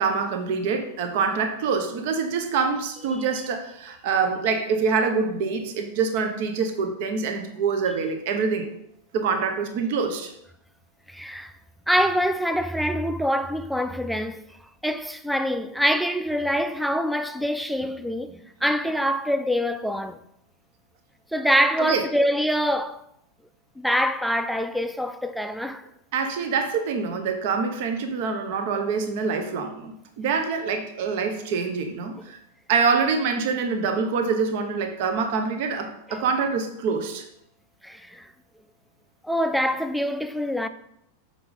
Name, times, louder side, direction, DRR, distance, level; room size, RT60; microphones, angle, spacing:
voice 1, 0.0-8.7 9.1-10.3 21.8-22.0 26.1-32.4 32.7-37.2, right 5 dB, 50° right, 0.8 m, -25 dB
voice 2, 11.1-11.5 11.9-14.4 14.8-20.2 21.3-23.0 23.8-25.8 36.1-36.2 37.8-38.3 39.2-40.7, equal, ahead, 0.4 m, -25 dB
6.9 x 4.9 x 3.9 m
figure-of-eight pair, 90°, 0 cm